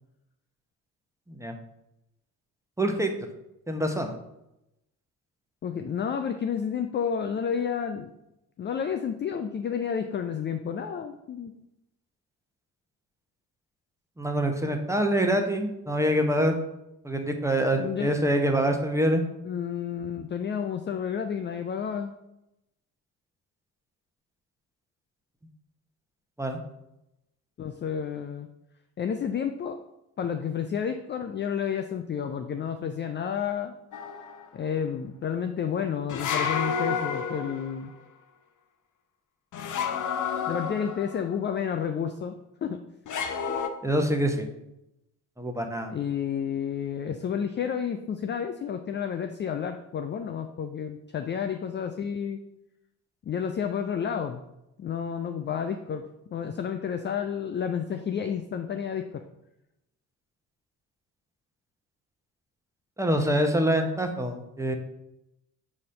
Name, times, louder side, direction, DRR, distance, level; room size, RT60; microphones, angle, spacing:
voice 1, 2.8-3.1 3.7-4.1 14.2-16.5 17.0-19.2 26.4-26.6 43.8-44.5 45.4-45.9 63.0-64.8, right 1 dB, 5° right, 4 dB, 1.0 m, -25 dB
voice 2, 5.6-8.1 8.6-11.5 17.7-18.1 19.4-22.1 27.6-28.5 29.0-29.8 30.2-33.7 34.5-37.9 40.3-42.4 42.6-42.8 45.9-52.4 53.3-54.4 54.8-56.0 56.3-59.2, left 7 dB, 25° left, 7 dB, 0.4 m, -30 dB
sound 1, 33.9-34.5 36.1-37.8 39.5-41.3 43.1-43.7, left 6 dB, 40° left, 0.8 m, -30 dB
4.8 x 4.2 x 5.6 m, 0.88 s
figure-of-eight pair, 45°, 45 cm